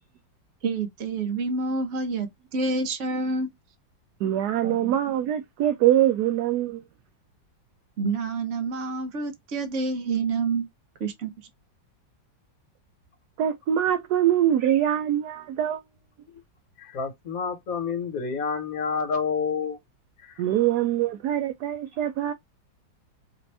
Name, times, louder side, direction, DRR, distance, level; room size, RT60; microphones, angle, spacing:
voice 1, 0.6-3.5 4.6-4.9 8.0-10.7 11.0-11.3, right 3 dB, 50° right, 1.1 m, -28 dB
voice 2, 4.2-6.8 13.4-15.8 20.4-22.3, right 11 dB, 70° right, 1.0 m, -23 dB
voice 3, 16.8-19.8 20.2-20.4, left 5 dB, 50° left, 1.6 m, -29 dB
5.1 x 2.5 x 3.3 m
omnidirectional pair, 2.1 m